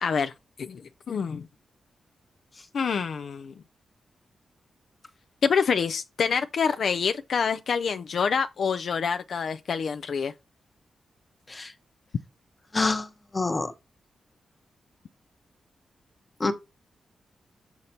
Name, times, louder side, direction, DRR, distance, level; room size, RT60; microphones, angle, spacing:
voice 1, 0.0-0.3 0.6-0.8 1.1-1.5 2.7-3.5 5.4-10.3, left 6 dB, 65° left, 0.3 m, -26 dB
voice 2, 12.7-13.1 13.3-13.7 16.4-16.5, left 3 dB, 30° left, 0.9 m, -26 dB
6.4 x 5.8 x 2.7 m
cardioid pair, 90°, 0 cm